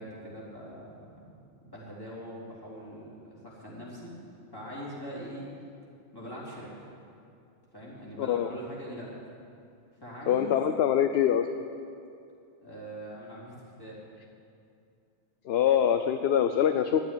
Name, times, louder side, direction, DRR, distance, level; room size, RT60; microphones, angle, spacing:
voice 1, 0.0-4.2 4.5-5.5 6.1-6.7 7.7-9.2 10.0-10.7 12.6-14.0, equal, 20° left, -6 dB, 3.7 m, -42 dB
voice 2, 8.2-8.5 10.3-11.5 15.5-17.1, left 9 dB, 65° left, 8 dB, 0.8 m, -24 dB
11.5 x 9.1 x 10.0 m, 2.5 s
omnidirectional pair, 1.2 m